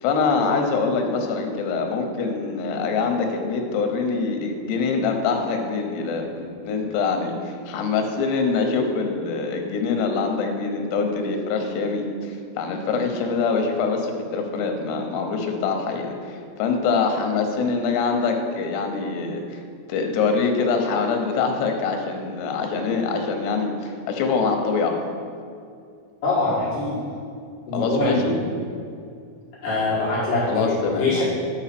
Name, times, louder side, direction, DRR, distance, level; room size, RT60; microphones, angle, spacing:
voice 1, 0.0-19.6 19.9-25.0 27.7-28.4 30.5-31.2, left 4 dB, 85° left, 4 dB, 3.0 m, -24 dB
voice 2, 26.2-27.0 27.7-28.2 29.6-31.2, left 2 dB, 60° left, -9 dB, 2.9 m, -23 dB
9.7 x 4.4 x 5.9 m, 2.4 s
omnidirectional pair, 4.7 m